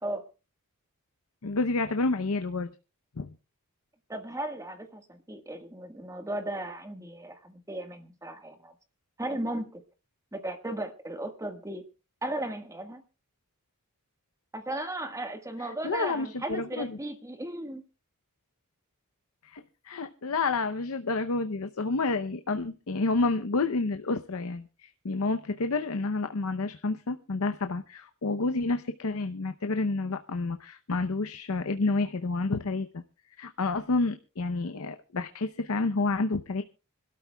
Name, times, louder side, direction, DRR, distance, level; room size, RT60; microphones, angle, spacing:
voice 1, 1.4-2.7 3.2-3.3 15.6-17.0 19.4-33.0 33.4-36.6, left 3 dB, 70° left, 8 dB, 0.7 m, -29 dB
voice 2, 4.1-8.7 9.2-9.8 10.3-11.8 12.2-13.0 14.5-17.8, right 1 dB, 15° right, 7 dB, 1.4 m, -36 dB
25.5 x 12.5 x 2.2 m, 0.31 s
head